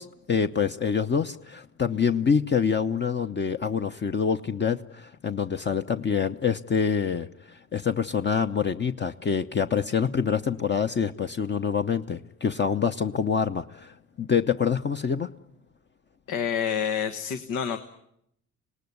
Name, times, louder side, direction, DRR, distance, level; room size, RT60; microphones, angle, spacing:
voice 1, 0.0-15.3, left 6 dB, 35° left, 8 dB, 0.9 m, -26 dB
voice 2, 16.3-17.8, left 8 dB, 90° left, 8 dB, 1.4 m, -28 dB
26.0 x 19.0 x 9.6 m, 0.76 s
cardioid pair, 90°, 30 cm